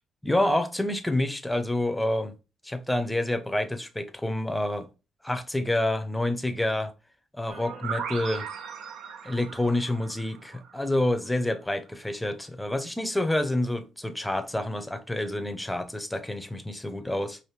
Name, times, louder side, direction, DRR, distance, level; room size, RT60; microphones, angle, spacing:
voice 1, 0.2-2.3 2.6-4.9 5.2-6.9 7.3-8.5 9.2-17.4, left 1 dB, 5° left, 0.6 m, -28 dB
sound 1, 7.5-11.2, right 7 dB, 85° right, 0.7 m, -38 dB
4.9 x 2.6 x 3.0 m
cardioid pair, 90°, 0 cm